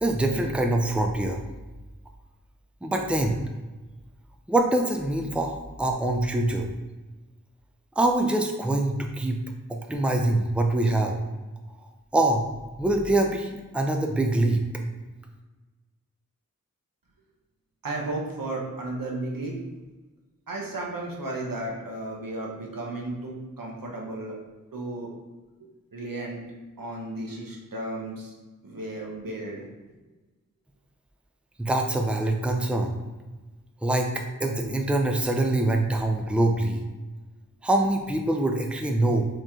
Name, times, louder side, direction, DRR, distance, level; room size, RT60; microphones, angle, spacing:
voice 1, 0.0-1.4 2.8-3.4 4.5-6.7 8.0-9.4 9.7-11.2 12.1-12.4 12.8-14.6 31.6-33.0 33.8-36.8 37.6-39.3, right 2 dB, 5° right, 2 dB, 0.5 m, -24 dB
voice 2, 17.8-19.6 20.5-24.3 24.7-25.1 25.9-26.4 26.8-28.3 28.6-29.7, right 2 dB, 85° right, -2 dB, 1.0 m, -34 dB
4.4 x 3.1 x 3.7 m, 1.2 s
wide cardioid pair, 45°, 33 cm